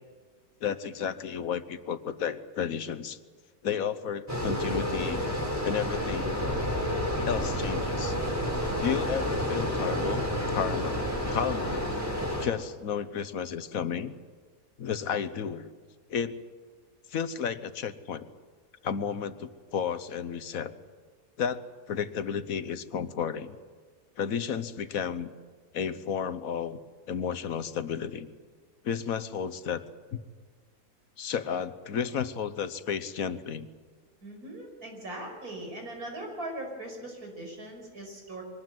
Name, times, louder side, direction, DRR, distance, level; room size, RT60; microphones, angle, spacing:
voice 1, 0.6-3.2 3.6-5.2 5.6-6.4 7.2-8.1 8.8-10.2 10.5-11.0 11.3-11.8 12.4-14.1 14.8-15.7 16.1-16.3 17.1-18.3 18.8-20.7 21.4-21.6 21.9-23.6 24.2-25.3 25.7-26.8 27.1-28.3 28.8-29.8 30.1-30.2 31.2-33.7, left 7 dB, 70° left, 13 dB, 1.4 m, -32 dB
sound 1, 4.3-12.5, equal, 10° right, 4.9 m, -30 dB
voice 2, 34.2-38.4, right 1 dB, 85° right, 2 dB, 5.9 m, -40 dB
23.0 x 19.5 x 7.8 m, 1.5 s
omnidirectional pair, 1.5 m